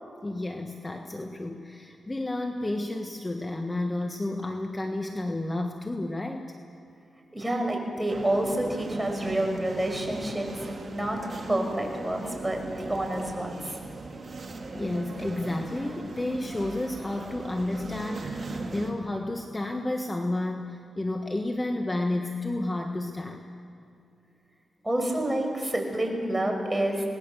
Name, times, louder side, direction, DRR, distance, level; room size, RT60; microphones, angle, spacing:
voice 1, 0.2-6.6 14.7-23.4, left 2 dB, 20° left, 4 dB, 1.5 m, -31 dB
voice 2, 7.3-10.5 10.9-11.2 11.5-13.8 24.8-27.0, right 1 dB, 10° right, 2 dB, 5.6 m, -28 dB
sound 1, 8.1-18.9, right 3 dB, 45° right, 2.6 m, -38 dB
26.5 x 19.5 x 7.0 m, 2.6 s
cardioid pair, 70°, 0 cm